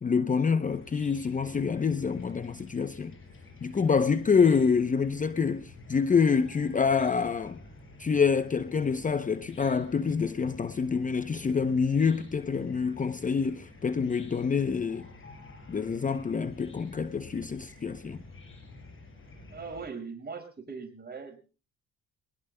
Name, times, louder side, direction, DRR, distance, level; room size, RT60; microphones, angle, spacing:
voice 1, 0.0-3.1 3.6-7.6 8.0-15.1 15.7-18.2, left 5 dB, 25° left, 0.7 m, -26 dB
Chicken rooster / Cricket, 0.7-19.8, left 2 dB, 45° left, 7.7 m, -49 dB
voice 2, 19.5-21.4, right 5 dB, 35° right, 5.5 m, -40 dB
24.0 x 20.0 x 2.2 m
cardioid pair, 90°, 30 cm